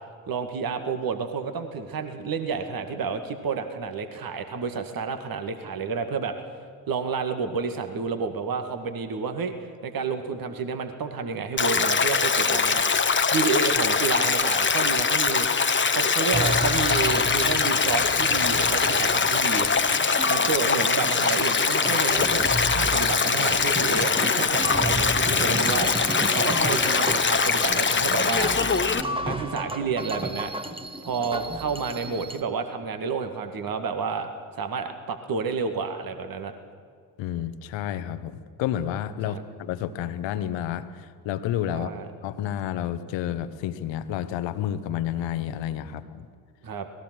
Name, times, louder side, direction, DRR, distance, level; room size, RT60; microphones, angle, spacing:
voice 1, 0.3-6.3 6.9-9.5 9.8-12.8 13.3-15.5 15.9-19.7 20.3-25.9 26.3-28.5 29.2-30.5 31.0-34.3 34.6-36.5 39.3-39.4 41.7-42.1 46.6-46.9, right 5 dB, 45° right, 7 dB, 2.1 m, -30 dB
Stream, 11.6-29.0, left 5 dB, 25° left, 1.3 m, -22 dB
sound 1, 16.3-32.4, right 1 dB, 10° right, 1.7 m, -33 dB
voice 2, 37.2-41.9 42.2-46.3, left 11 dB, 60° left, 12 dB, 1.4 m, -30 dB
27.0 x 19.5 x 6.3 m, 2.1 s
figure-of-eight pair, 45°, 49 cm